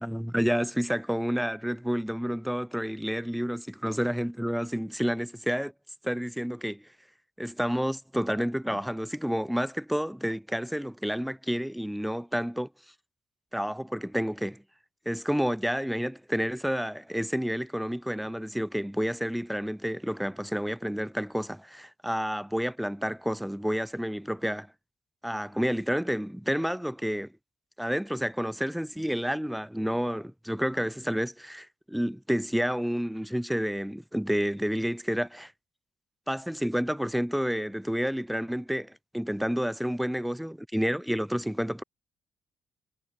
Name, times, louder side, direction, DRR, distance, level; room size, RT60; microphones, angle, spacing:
voice 1, 0.0-5.7 6.0-6.8 7.4-12.7 13.5-14.6 15.1-24.7 25.2-27.3 27.8-35.5 36.3-41.8, equal, ahead, 0.9 m, -30 dB
figure-of-eight pair, 40°, 0 cm